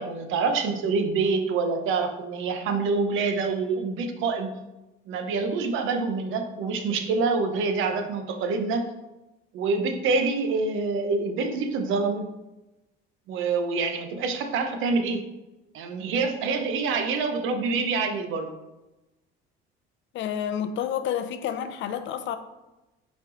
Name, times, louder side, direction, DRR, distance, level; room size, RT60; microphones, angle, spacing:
voice 1, 0.0-4.5 5.1-8.9 9.5-12.3 13.3-15.2 15.7-18.5, right 4 dB, 70° right, 6 dB, 0.8 m, -26 dB
voice 2, 20.1-22.4, left 9 dB, 60° left, 10 dB, 0.6 m, -29 dB
5.6 x 4.5 x 3.9 m, 1.0 s
cardioid pair, 145°, 21 cm